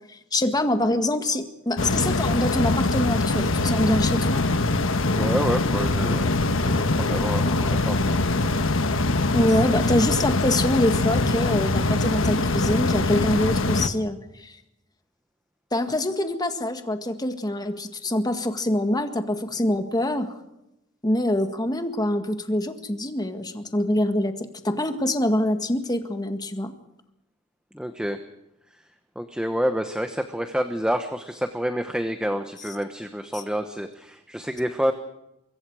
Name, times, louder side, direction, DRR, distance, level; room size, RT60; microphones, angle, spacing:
voice 1, 0.3-4.4 9.3-14.6 15.7-20.3 21.0-26.7 33.3-33.4, left 1 dB, 20° left, 6 dB, 1.9 m, -25 dB
sound 1, 1.8-13.9, left 2 dB, 70° left, 1.3 m, -23 dB
voice 2, 5.1-8.2 27.7-28.2 29.1-34.9, equal, 5° right, 7 dB, 1.1 m, -28 dB
25.0 x 23.0 x 4.9 m, 0.87 s
head